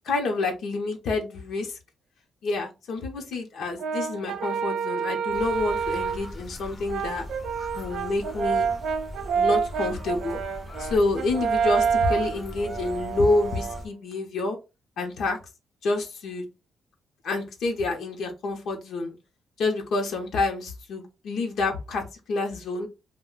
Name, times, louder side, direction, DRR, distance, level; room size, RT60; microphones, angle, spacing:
voice 1, 0.1-1.7 2.4-7.3 7.7-8.7 9.3-10.4 10.8-14.6 15.0-15.4 15.8-16.4 17.2-19.2 19.6-22.9, left 3 dB, 80° left, 3 dB, 0.7 m, -28 dB
Brass instrument, 3.8-6.3 6.9-13.9, right 6 dB, 75° right, 0.3 m, -28 dB
sound 1, 5.3-13.9, left 1 dB, 30° left, 0.5 m, -40 dB
2.4 x 2.2 x 3.6 m, 0.27 s
cardioid pair, 110°, 0 cm